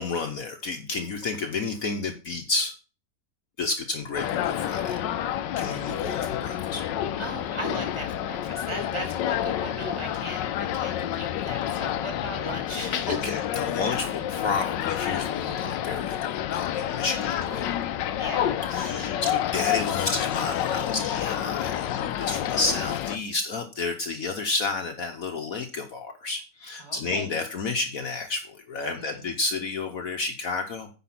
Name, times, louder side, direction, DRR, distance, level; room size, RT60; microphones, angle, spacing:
voice 1, 0.0-2.7 3.6-5.0 5.6-6.8 13.1-17.7 18.7-30.9, left 3 dB, 55° left, 5 dB, 1.3 m, -31 dB
sound 1, 4.1-23.2, left 11 dB, 85° left, 1.4 m, -29 dB
voice 2, 7.2-13.4 17.2-17.4 18.2-19.1 26.8-27.3 29.0-29.3, equal, 15° right, 3 dB, 2.3 m, -37 dB
9.7 x 5.0 x 5.9 m, 0.33 s
omnidirectional pair, 1.9 m